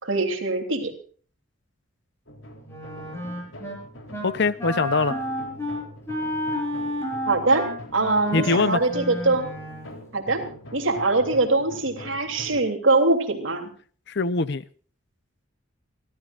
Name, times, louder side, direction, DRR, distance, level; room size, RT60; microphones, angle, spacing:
voice 1, 0.0-0.9 7.3-9.5 10.1-10.5 10.7-13.7, right 2 dB, 70° right, 4 dB, 3.2 m, -23 dB
sound 1, 2.3-12.6, equal, 75° left, 3.7 m, -43 dB
Wind instrument woodwind instrument, 2.7-3.8 4.1-4.3 4.6-9.9, equal, 15° left, 7.2 m, -31 dB
voice 2, 4.2-5.2 8.3-8.8 14.1-14.6, left 3 dB, 60° left, 16 dB, 0.8 m, -22 dB
28.5 x 13.5 x 2.5 m, 0.43 s
head